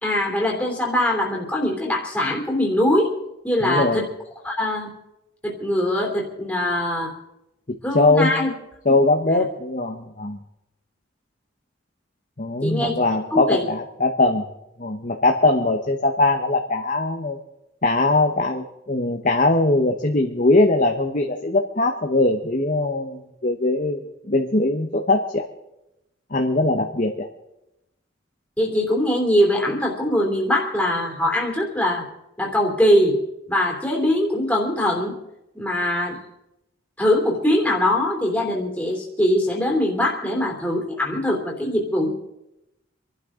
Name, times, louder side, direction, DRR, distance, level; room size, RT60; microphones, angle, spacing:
voice 1, 0.0-3.2 3.4-4.1 4.4-4.9 5.4-7.2 7.8-8.5 8.9-9.0 9.3-9.4 12.6-13.0 13.3-13.6 28.6-32.1 32.4-35.1 35.5-36.2 37.0-42.1, left 1 dB, 5° left, -2 dB, 3.2 m, -22 dB
voice 2, 3.6-4.0 7.7-8.4 8.8-10.4 12.4-14.4 14.8-17.4 17.8-25.4 26.3-27.3, left 2 dB, 40° left, 3 dB, 1.2 m, -21 dB
26.5 x 12.0 x 3.8 m, 0.89 s
head